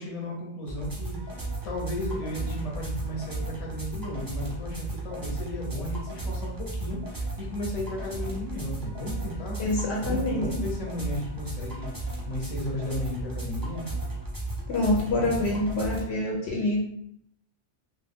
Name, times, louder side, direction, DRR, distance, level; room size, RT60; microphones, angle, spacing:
voice 1, 0.0-9.6 10.0-13.9 14.8-15.4, left 1 dB, 35° left, -2 dB, 0.7 m, -35 dB
sound 1, 0.7-16.0, right 2 dB, 20° right, 0.6 m, -34 dB
voice 2, 9.6-10.6 14.7-16.8, left 2 dB, 70° left, -1 dB, 0.8 m, -26 dB
2.3 x 2.2 x 3.4 m, 0.71 s
omnidirectional pair, 1.2 m